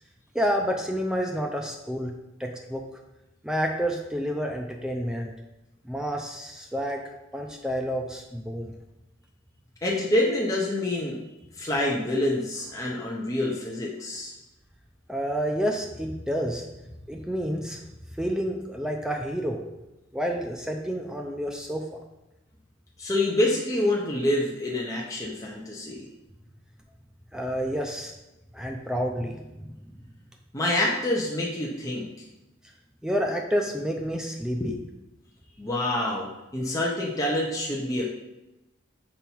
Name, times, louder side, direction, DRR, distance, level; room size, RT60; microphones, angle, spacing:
voice 1, 0.3-2.1 2.4-2.8 3.4-5.3 5.8-7.0 7.3-8.7 15.1-16.7 17.1-17.8 18.2-19.6 20.1-22.0 27.3-28.1 28.5-29.8 33.0-34.7, equal, 5° right, 2 dB, 0.4 m, -29 dB
voice 2, 9.8-11.2 11.6-14.3 23.0-26.1 30.5-32.2 34.6-34.8 35.6-38.0, left 1 dB, 15° left, -4 dB, 0.8 m, -27 dB
5.5 x 4.6 x 4.5 m, 0.98 s
head